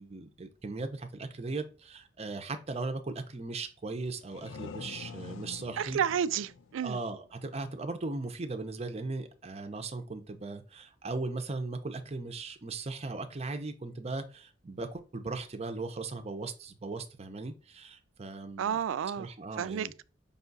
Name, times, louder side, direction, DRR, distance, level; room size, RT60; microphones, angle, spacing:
voice 1, 0.0-6.0 6.8-18.8 19.1-19.9, right 3 dB, 35° right, 0.6 m, -38 dB
sound 1, 4.1-7.7, left 5 dB, 80° left, 0.4 m, -46 dB
voice 2, 5.8-7.0 18.6-19.3 19.6-20.0, right 8 dB, 85° right, 0.3 m, -31 dB
5.4 x 2.3 x 3.9 m
head